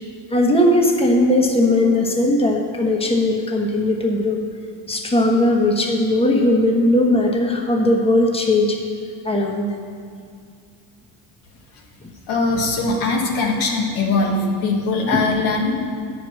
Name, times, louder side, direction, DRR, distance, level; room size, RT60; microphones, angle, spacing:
voice 1, 0.3-4.4 4.9-8.8 9.2-9.7, left 1 dB, 10° left, 1 dB, 1.2 m, -18 dB
voice 2, 12.3-15.7, left 3 dB, 80° left, 0 dB, 1.6 m, -21 dB
9.0 x 5.0 x 6.3 m, 2.3 s
supercardioid pair, 75°, 48 cm